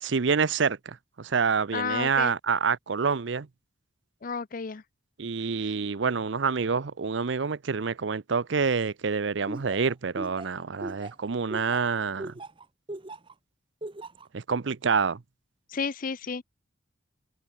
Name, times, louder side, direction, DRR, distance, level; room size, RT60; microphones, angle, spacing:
voice 1, 0.0-3.5 5.2-12.3 14.3-15.2, right 5 dB, 65° right, 0.6 m, -27 dB
voice 2, 1.7-2.3 4.2-4.8 5.6-5.7 15.7-16.4, left 5 dB, 45° left, 0.5 m, -32 dB
Laughter, 9.5-13.3 13.8-14.3, right 2 dB, 25° right, 0.9 m, -38 dB
head